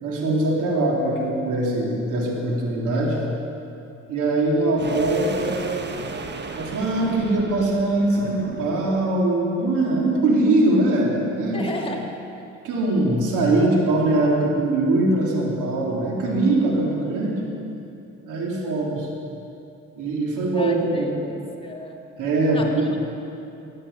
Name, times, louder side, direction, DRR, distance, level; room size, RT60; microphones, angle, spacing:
voice 1, 0.0-3.2 4.1-6.0 6.5-11.7 12.6-17.4 18.2-19.1 19.9-21.2 22.2-22.9, right 2 dB, 85° right, -2 dB, 3.3 m, -22 dB
sound 1, 4.8-9.1, right 4 dB, 35° right, 1.4 m, -35 dB
voice 2, 11.5-12.2 20.5-21.1 21.6-22.1 22.5-23.0, left 1 dB, 20° left, 0 dB, 2.1 m, -33 dB
15.5 x 8.7 x 9.5 m, 2.7 s
cardioid pair, 90°, 30 cm